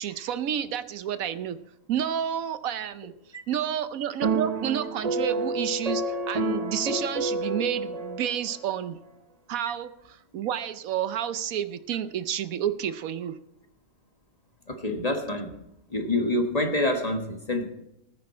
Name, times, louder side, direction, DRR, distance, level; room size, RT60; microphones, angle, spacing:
voice 1, 0.0-1.6 1.9-3.1 3.5-9.0 9.5-13.4, right 9 dB, 75° right, 12 dB, 1.1 m, -30 dB
sound 1, 4.2-8.7, right 2 dB, 35° right, 0.6 m, -29 dB
voice 2, 14.7-15.5 15.9-17.7, left 1 dB, 30° left, 4 dB, 1.5 m, -27 dB
19.5 x 9.8 x 4.3 m, 0.84 s
omnidirectional pair, 1.5 m